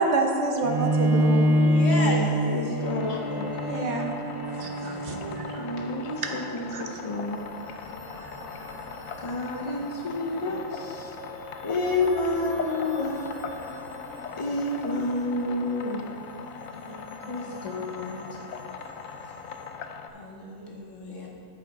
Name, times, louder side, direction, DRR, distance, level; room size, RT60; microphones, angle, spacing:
voice 1, 0.0-1.6 3.7-4.2 4.6-5.6 6.7-6.8, right 3 dB, 60° right, 3 dB, 1.1 m, -28 dB
Bowed string instrument, 0.6-6.3, equal, 25° right, 0.6 m, -25 dB
voice 2, 1.1-3.5 5.6-7.4 9.2-11.1 11.6-13.4 14.4-16.1 17.3-18.2, left 2 dB, 45° left, 1 dB, 0.4 m, -30 dB
voice 3, 1.7-2.3 3.6-3.9 4.6-5.2 6.2-6.4 10.4-10.6 14.1-14.3 16.7-18.2 20.1-21.3, left 1 dB, 65° left, -3 dB, 1.9 m, -37 dB
sound 1, 2.8-20.1, left 6 dB, 85° left, 1.0 m, -40 dB
sound 2, 6.9-19.7, equal, 10° left, 1.8 m, -45 dB
13.5 x 5.2 x 3.9 m, 2.5 s
omnidirectional pair, 1.4 m